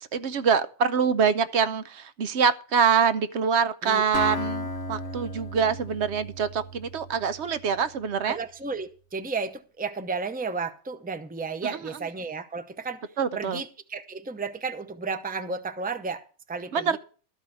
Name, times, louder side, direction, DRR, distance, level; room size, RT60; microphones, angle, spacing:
voice 1, 0.1-8.4 11.6-11.8 13.2-13.6 16.7-17.0, right 6 dB, 70° right, 1.0 m, -25 dB
Acoustic guitar, 4.1-8.0, left 2 dB, 90° left, 1.7 m, -35 dB
voice 2, 8.2-13.1 13.3-16.2 16.5-17.0, right 4 dB, 10° right, 0.7 m, -33 dB
13.0 x 5.5 x 8.2 m
omnidirectional pair, 1.2 m